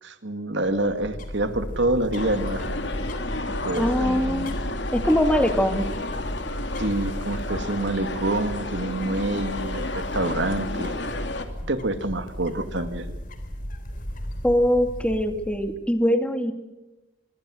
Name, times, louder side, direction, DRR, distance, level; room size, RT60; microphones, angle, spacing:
voice 1, 0.0-2.7 3.5-4.6 6.8-10.9 11.7-13.1, right 2 dB, 65° right, 9 dB, 2.0 m, -27 dB
sound 1, 0.6-15.9, equal, 45° left, 3.6 m, -34 dB
sound 2, 2.2-11.5, left 2 dB, 60° left, 2.7 m, -32 dB
voice 2, 3.8-4.5 4.9-5.9 14.4-16.5, equal, 5° left, 7 dB, 2.2 m, -22 dB
24.5 x 22.5 x 6.3 m, 1.1 s
head